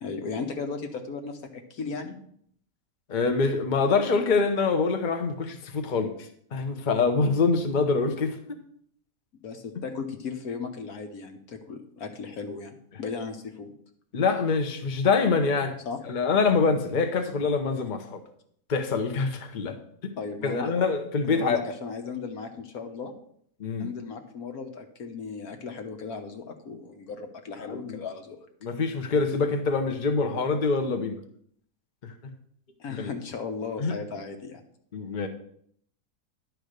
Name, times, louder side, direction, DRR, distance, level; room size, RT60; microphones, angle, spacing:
voice 1, 0.0-2.1 9.4-13.7 15.8-16.0 20.2-20.7 21.2-23.1 23.8-28.4 32.8-34.6, left 5 dB, 70° left, 5 dB, 1.5 m, -36 dB
voice 2, 3.1-8.4 14.1-15.7 16.0-18.2 18.7-19.8 20.0-20.1 20.4-21.6 23.6-23.9 27.6-28.0 28.6-31.2 32.0-32.1 33.0-33.1 33.8-33.9 34.9-35.3, left 4 dB, 35° left, 6 dB, 0.9 m, -25 dB
10.5 x 4.7 x 6.6 m, 0.65 s
omnidirectional pair, 1.7 m